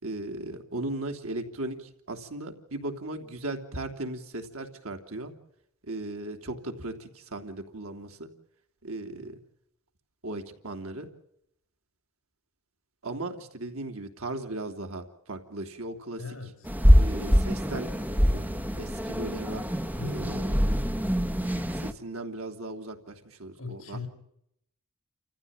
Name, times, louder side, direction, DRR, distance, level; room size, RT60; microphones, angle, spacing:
voice 1, 0.0-5.3 5.8-8.3 8.8-9.4 10.2-11.1 13.0-16.2 17.0-17.9 18.3-18.4 18.7-19.6 20.0-20.6 21.8-24.1, right 2 dB, 70° right, 5 dB, 3.2 m, -37 dB
voice 2, 16.2-16.7 20.0-20.4 23.6-24.1, left 4 dB, 65° left, 8 dB, 5.4 m, -39 dB
sound 1, 16.6-21.9, equal, 5° right, 1.2 m, -24 dB
29.5 x 15.0 x 9.0 m, 0.78 s
head